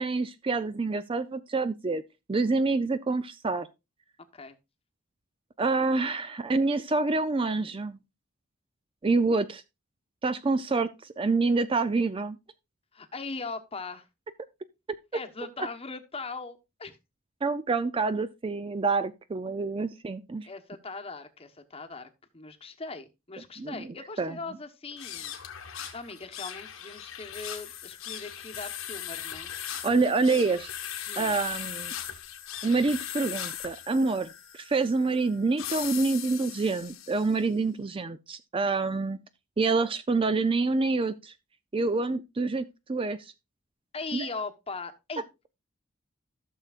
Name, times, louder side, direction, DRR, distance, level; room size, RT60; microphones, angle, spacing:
voice 1, 0.0-2.0 2.3-3.7 5.6-8.0 9.0-9.6 10.2-12.4 17.4-20.5 23.6-23.9 24.2-24.4 29.8-30.7 31.2-31.9 32.6-39.2 39.6-41.3 41.7-43.3 44.1-44.3, right 3 dB, 25° right, 0.4 m, -27 dB
voice 2, 12.9-14.0 15.1-17.0 19.5-19.6 20.4-25.3 25.9-29.5 31.1-31.4 43.9-45.2, left 3 dB, 30° left, 1.0 m, -40 dB
sound 1, 24.9-37.4, left 10 dB, 90° left, 1.4 m, -39 dB
15.0 x 6.7 x 2.4 m
head